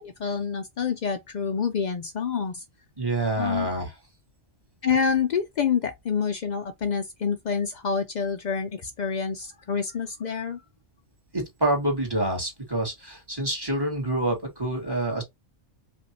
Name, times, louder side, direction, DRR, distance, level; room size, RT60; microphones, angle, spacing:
voice 1, 0.0-2.6 3.4-3.7 4.8-10.6, left 6 dB, 90° left, 0.3 m, -27 dB
voice 2, 3.0-3.9 11.3-15.2, right 1 dB, 20° right, 1.9 m, -27 dB
5.1 x 2.6 x 2.8 m
omnidirectional pair, 1.3 m